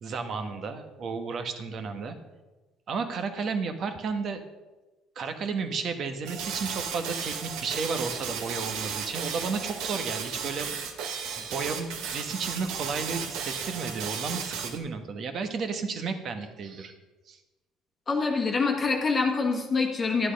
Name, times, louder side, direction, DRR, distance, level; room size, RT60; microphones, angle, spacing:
voice 1, 0.0-2.2 2.9-4.4 5.1-10.7 11.4-16.9 17.3-17.4, right 5 dB, 35° right, 8 dB, 1.3 m, -33 dB
sound 1, 6.2-14.8, right 6 dB, 70° right, 1.7 m, -34 dB
voice 2, 18.1-20.3, left 4 dB, 20° left, 1 dB, 1.5 m, -25 dB
12.0 x 11.0 x 5.3 m, 1.2 s
cardioid pair, 175°, 0 cm